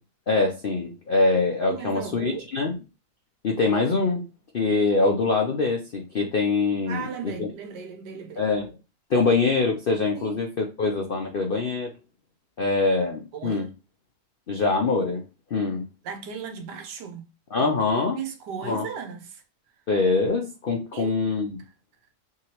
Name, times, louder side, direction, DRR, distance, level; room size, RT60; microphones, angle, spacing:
voice 1, 0.3-2.7 3.4-4.2 4.5-7.5 8.4-8.7 9.1-11.9 12.6-13.7 14.5-15.2 15.5-15.8 17.5-18.2 18.6-18.9 19.9-21.6, left 3 dB, 70° left, 0.5 m, -24 dB
voice 2, 1.7-2.5 6.2-6.3 6.9-8.4 9.1-9.3 10.1-10.4 13.3-13.7 16.0-17.2 18.2-19.4 20.9-21.2, right 7 dB, 85° right, 1.4 m, -36 dB
3.6 x 2.9 x 2.9 m
omnidirectional pair, 1.8 m